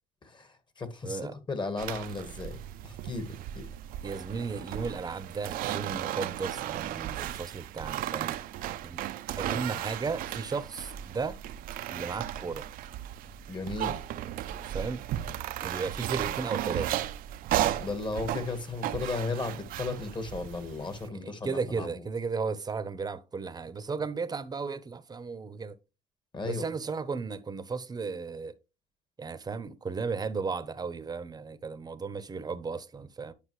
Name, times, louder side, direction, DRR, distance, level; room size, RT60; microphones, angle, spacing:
voice 1, 0.2-2.6 2.8-3.7 13.5-14.0 17.8-21.9 26.3-26.6, left 3 dB, 30° left, 1.5 m, -35 dB
voice 2, 1.0-1.3 4.0-8.4 8.8-9.0 9.4-11.4 11.9-12.6 14.7-15.0 15.6-16.9 21.0-25.7 26.5-28.6 29.2-33.3, right 4 dB, 25° right, 0.8 m, -35 dB
sound 1, 1.8-21.1, right 12 dB, 70° right, 0.6 m, -35 dB
10.5 x 5.2 x 3.2 m
cardioid pair, 90°, 15 cm